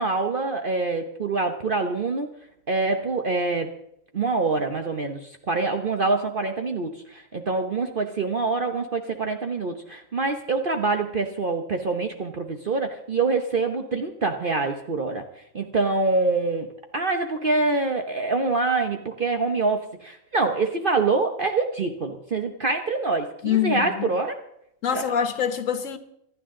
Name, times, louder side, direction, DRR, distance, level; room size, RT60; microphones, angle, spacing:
voice 1, 0.0-2.3 2.7-3.7 4.1-15.2 15.5-16.7 16.9-24.4 24.9-25.0, right 3 dB, 45° right, 1.1 m, -25 dB
voice 2, 23.4-24.0 24.8-26.0, left 8 dB, 75° left, 1.6 m, -25 dB
25.0 x 11.5 x 3.8 m
omnidirectional pair, 1.4 m